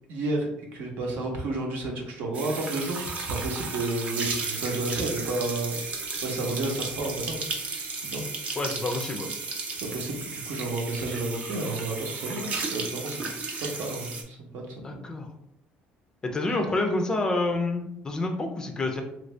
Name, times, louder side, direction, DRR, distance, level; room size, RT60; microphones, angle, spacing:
voice 1, 0.1-5.8 6.2-8.2 9.8-15.1, right 2 dB, 70° right, 0 dB, 0.9 m, -31 dB
sound 1, 2.3-14.2, right 4 dB, 40° right, 0.6 m, -34 dB
voice 2, 8.6-9.3 14.8-15.3 16.2-19.0, left 2 dB, 20° left, 4 dB, 0.4 m, -28 dB
3.1 x 2.6 x 3.2 m, 0.79 s
cardioid pair, 150°, 4 cm